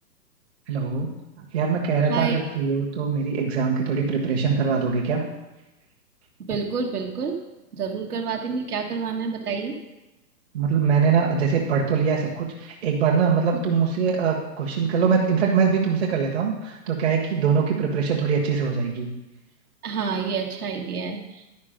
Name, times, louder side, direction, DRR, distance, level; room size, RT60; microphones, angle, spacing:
voice 1, 0.7-1.1 1.4-5.2 10.5-19.1, right 6 dB, 40° right, -2 dB, 1.5 m, -23 dB
voice 2, 2.1-2.4 6.5-7.4 7.7-9.7 19.8-21.5, right 5 dB, 65° right, 1 dB, 1.7 m, -28 dB
11.0 x 5.2 x 5.1 m, 1.0 s
hypercardioid pair, 160°, 49 cm